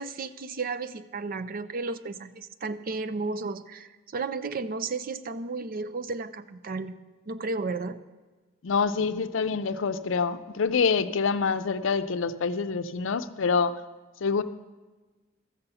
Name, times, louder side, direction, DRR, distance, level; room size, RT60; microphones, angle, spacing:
voice 1, 0.0-6.9 7.3-8.0, right 3 dB, 50° right, 12 dB, 0.5 m, -33 dB
voice 2, 8.6-13.8 14.2-14.4, left 5 dB, 70° left, 12 dB, 0.5 m, -26 dB
13.5 x 6.9 x 6.9 m, 1.3 s
head